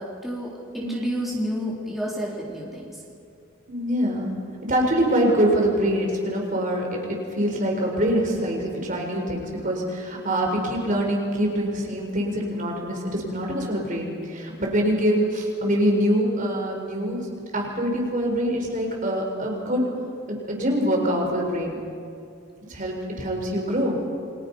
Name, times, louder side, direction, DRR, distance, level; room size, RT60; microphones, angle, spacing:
voice 1, 0.0-3.0, equal, ahead, -5 dB, 3.8 m, -30 dB
voice 2, 3.7-4.3 4.7-17.3 17.5-19.8 20.3-21.8 22.7-24.0, equal, 40° right, 0 dB, 4.7 m, -24 dB
29.0 x 25.0 x 5.6 m, 2.4 s
head